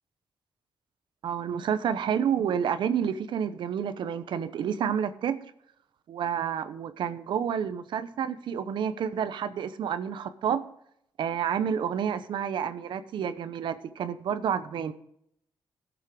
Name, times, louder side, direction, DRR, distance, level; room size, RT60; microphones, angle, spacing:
voice 1, 1.2-5.4 6.1-10.6 11.2-14.9, right 8 dB, 85° right, 11 dB, 0.9 m, -29 dB
16.5 x 7.3 x 4.8 m, 0.73 s
wide cardioid pair, 140°, 8 cm